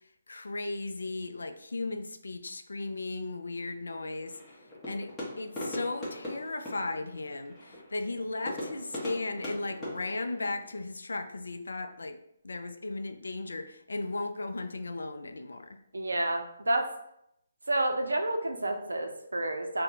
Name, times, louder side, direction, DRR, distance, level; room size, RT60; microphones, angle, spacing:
voice 1, 0.3-4.4 4.9-12.2 12.4-15.8, left 2 dB, 70° left, 7 dB, 0.3 m, -36 dB
sound 1, 4.2-10.8, left 1 dB, 10° left, 1.0 m, -41 dB
voice 2, 15.9-16.9 17.7-19.8, right 1 dB, 75° right, 4 dB, 0.5 m, -29 dB
2.6 x 2.1 x 4.0 m, 0.77 s
figure-of-eight pair, 140°, 0 cm